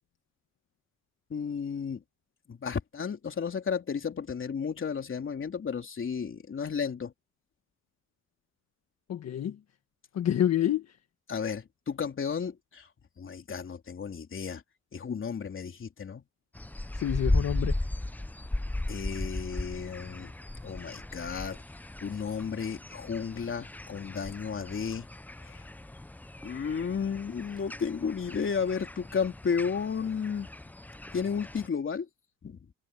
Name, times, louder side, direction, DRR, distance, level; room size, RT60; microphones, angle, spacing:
voice 1, 1.3-2.0 2.5-7.1 11.3-12.9 13.2-14.6 14.9-16.2 18.9-20.3 20.6-21.6 22.0-25.1 25.4-25.6 26.4-30.5 31.1-32.1 32.4-32.6, left 6 dB, 40° left, 3.5 m, -33 dB
voice 2, 9.1-9.6 10.1-11.0 16.9-17.8, left 11 dB, 60° left, 1.6 m, -28 dB
sound 1, 16.5-31.7, left 1 dB, 5° left, 0.5 m, -36 dB
cardioid pair, 90°, 30 cm